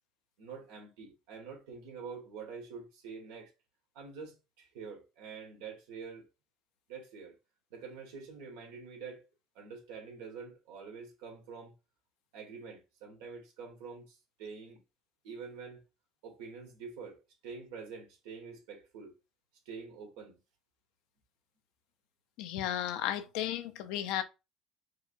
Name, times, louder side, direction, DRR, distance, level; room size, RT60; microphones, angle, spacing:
voice 1, 0.4-3.5 3.9-6.3 6.9-7.4 7.7-9.3 9.5-11.7 12.3-14.8 15.2-15.8 16.2-19.1 19.6-20.4, right 5 dB, 90° right, 1.5 m, -46 dB
voice 2, 22.4-24.2, left 11 dB, 75° left, 0.5 m, -34 dB
4.7 x 2.3 x 2.5 m
cardioid pair, 120°, 0 cm